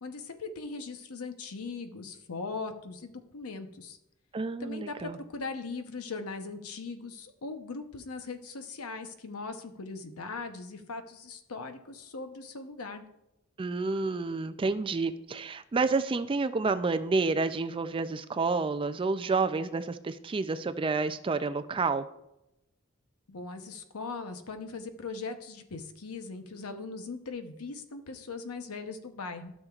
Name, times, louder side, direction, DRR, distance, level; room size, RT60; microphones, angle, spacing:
voice 1, 0.0-4.0 4.6-13.0 23.3-29.5, left 4 dB, 85° left, 7 dB, 0.8 m, -40 dB
voice 2, 4.3-5.2 13.6-22.1, right 4 dB, 25° right, 12 dB, 0.3 m, -29 dB
12.5 x 6.5 x 2.4 m, 0.87 s
head